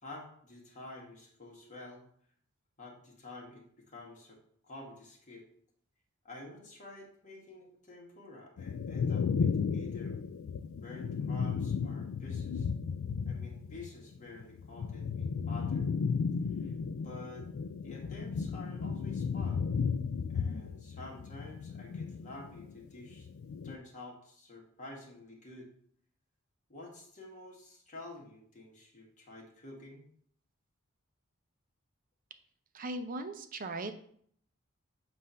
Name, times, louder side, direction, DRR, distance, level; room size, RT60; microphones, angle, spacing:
voice 1, 0.0-2.0 2.8-5.4 6.2-10.2 10.8-12.7 13.3-15.9 16.6-17.5 17.8-19.7 20.3-23.3 23.6-25.7 26.7-30.1, left 2 dB, 35° left, -2 dB, 1.4 m, -49 dB
sound 1, 8.6-13.9 14.2-22.7 23.1-23.8, left 5 dB, 65° left, 0.3 m, -34 dB
voice 2, 32.7-33.9, right 2 dB, 40° right, 8 dB, 0.5 m, -38 dB
7.5 x 2.6 x 5.5 m, 0.63 s
head